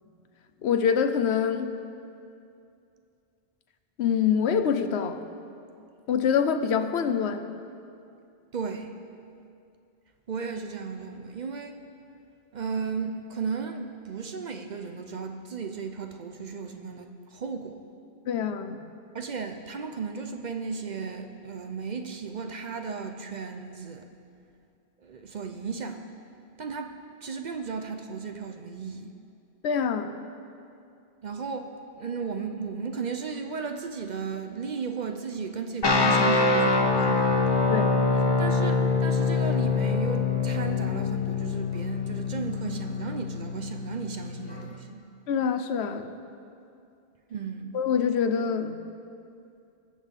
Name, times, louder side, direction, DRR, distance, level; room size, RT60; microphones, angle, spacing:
voice 1, 0.6-1.7 4.0-5.2 6.1-7.4 18.3-18.8 29.6-30.1 37.7-37.9 45.3-46.1 47.7-48.8, left 7 dB, 85° left, 9 dB, 1.0 m, -25 dB
voice 2, 8.5-8.9 10.3-11.8 12.5-17.8 19.1-24.1 25.0-26.0 26.6-29.1 31.2-31.7 31.9-37.3 38.4-45.0 47.3-47.7, right 5 dB, 50° right, 6 dB, 0.7 m, -35 dB
sound 1, 35.8-44.7, left 4 dB, 25° left, 0.7 m, -25 dB
21.0 x 7.2 x 3.8 m, 2.5 s
omnidirectional pair, 1.1 m